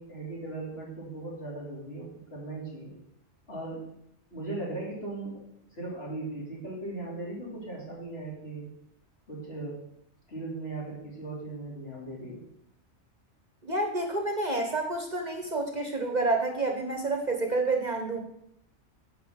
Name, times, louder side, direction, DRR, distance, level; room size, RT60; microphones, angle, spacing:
voice 1, 0.0-2.9 3.5-3.9 4.3-5.4 5.7-8.7 9.3-9.8 10.3-12.4, right 2 dB, 60° left, -4 dB, 3.6 m, -38 dB
voice 2, 13.6-18.2, right 2 dB, 40° right, 4 dB, 1.0 m, -29 dB
10.0 x 4.2 x 7.1 m, 0.76 s
omnidirectional pair, 1.2 m